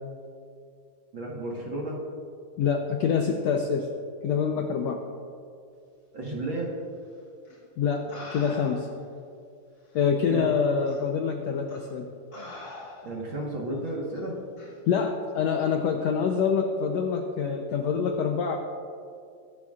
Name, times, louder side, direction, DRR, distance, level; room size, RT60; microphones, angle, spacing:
voice 1, 1.1-2.0 6.1-6.7 10.2-10.4 13.0-14.3, right 1 dB, 50° right, -3 dB, 1.6 m, -32 dB
voice 2, 2.6-3.9 4.2-5.0 7.8-8.9 9.9-12.1 14.9-18.6, left 6 dB, 80° left, 3 dB, 1.5 m, -26 dB
sound 1, 7.4-7.6 8.1-9.0 9.9-10.0 10.8-11.0 11.7-11.9 12.3-13.3 14.6-14.8, left 2 dB, 35° left, 3.2 m, -43 dB
22.5 x 12.0 x 2.4 m, 2.4 s
omnidirectional pair, 3.8 m